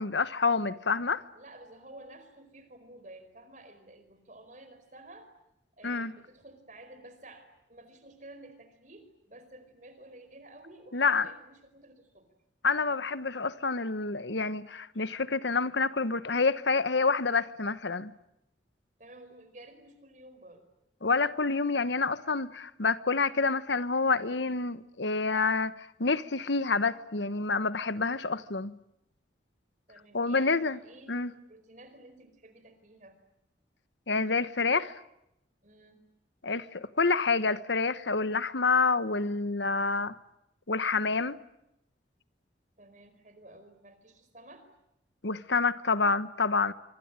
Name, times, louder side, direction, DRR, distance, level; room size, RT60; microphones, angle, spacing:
voice 1, 0.0-1.2 5.8-6.1 10.9-11.3 12.6-18.1 21.0-25.7 26.0-28.7 30.1-30.8 31.1-31.3 34.1-34.9 36.4-40.1 40.7-41.4 45.2-46.7, left 4 dB, 75° left, 1.2 m, -28 dB
voice 2, 1.3-5.3 5.8-12.3 19.0-20.7 29.9-33.2 35.6-36.0 42.8-44.7, right 1 dB, 40° right, 4.8 m, -52 dB
25.5 x 25.0 x 9.0 m
head